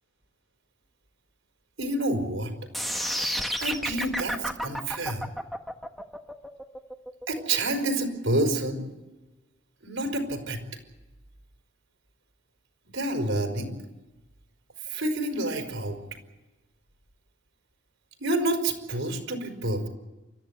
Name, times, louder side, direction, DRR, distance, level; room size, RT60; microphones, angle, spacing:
voice 1, 1.8-2.5 3.6-5.3 7.3-8.8 9.8-10.6 12.9-13.7 14.9-16.0 18.2-19.9, right 1 dB, 75° right, 4 dB, 4.5 m, -28 dB
sound 1, 2.7-8.8, equal, ahead, 1.2 m, -31 dB
29.0 x 14.0 x 9.3 m, 1.1 s
head